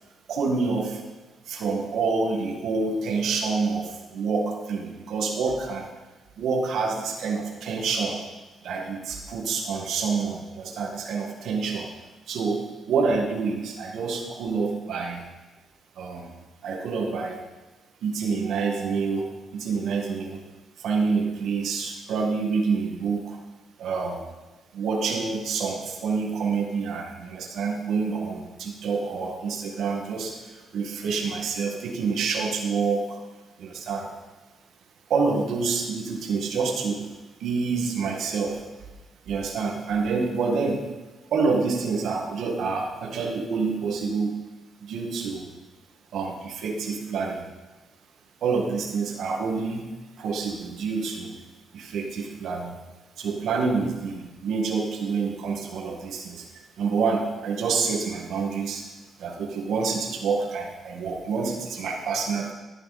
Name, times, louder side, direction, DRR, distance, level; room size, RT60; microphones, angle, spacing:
voice 1, 0.3-1.0 1.5-5.9 6.4-8.2 8.6-11.9 12.3-15.2 16.0-16.3 16.6-17.4 18.0-20.4 20.8-23.4 23.8-24.3 24.7-33.2 33.6-34.1 35.1-37.1 37.4-38.6 39.3-40.9 41.3-44.3 44.8-45.5 46.1-47.4 48.4-49.9 50.2-51.4 51.7-52.8 53.2-58.9 59.2-62.5, right 4 dB, 75° right, -1 dB, 1.9 m, -27 dB
12.0 x 10.0 x 4.2 m, 1.2 s
cardioid pair, 90°, 0 cm